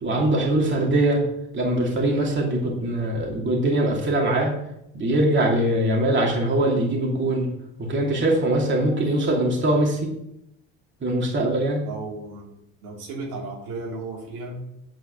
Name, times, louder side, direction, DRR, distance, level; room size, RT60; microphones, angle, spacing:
voice 1, 0.0-1.2 1.5-4.5 4.9-7.5 7.8-10.0 11.0-11.8, right 1 dB, 35° right, -1 dB, 2.6 m, -22 dB
voice 2, 11.8-12.5 12.8-14.8, right 3 dB, 90° right, -3 dB, 3.2 m, -35 dB
9.4 x 4.6 x 6.1 m, 0.80 s
cardioid pair, 100°, 32 cm